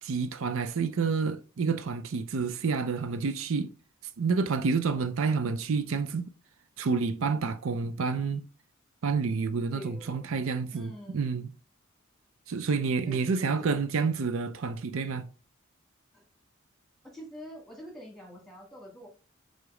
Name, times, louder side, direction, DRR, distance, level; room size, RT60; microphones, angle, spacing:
voice 1, 0.0-3.7 4.2-6.3 6.8-8.4 9.0-11.5 12.5-15.3, right 5 dB, 70° right, 0.5 m, -29 dB
voice 2, 9.7-10.3 10.7-11.5 13.0-13.8 16.1-16.2 17.1-19.1, left 1 dB, ahead, 1.9 m, -46 dB
4.9 x 3.9 x 4.8 m
head